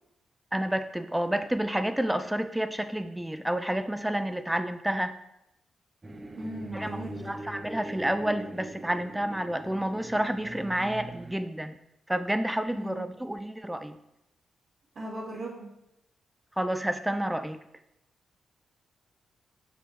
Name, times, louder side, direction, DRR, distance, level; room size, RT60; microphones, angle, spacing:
voice 1, 0.5-5.1 6.7-7.0 7.3-11.7 12.1-14.0 16.6-17.6, right 1 dB, 10° right, 10 dB, 0.4 m, -29 dB
sound 1, 6.0-11.4, right 1 dB, 30° right, 0.8 m, -42 dB
voice 2, 6.4-7.3 12.7-13.0 14.9-15.7, right 1 dB, 65° right, -11 dB, 2.6 m, -38 dB
7.2 x 5.9 x 3.0 m, 0.84 s
hypercardioid pair, 45°, 0 cm